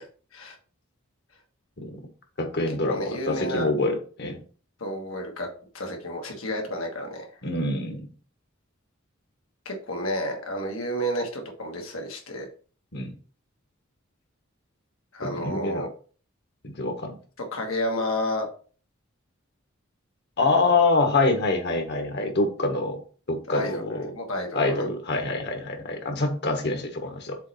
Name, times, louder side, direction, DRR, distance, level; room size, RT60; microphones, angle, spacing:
voice 1, 2.4-4.4 7.4-8.1 12.9-13.1 15.2-15.8 16.6-17.2 20.4-23.0 23.3-24.1 24.5-27.4, left 3 dB, 55° left, 5 dB, 1.4 m, -25 dB
voice 2, 2.9-3.7 4.8-5.5 5.7-7.3 9.6-12.5 15.1-15.9 17.5-18.5 23.5-24.9, equal, 75° left, 2 dB, 1.5 m, -31 dB
7.2 x 3.2 x 4.2 m, 0.40 s
head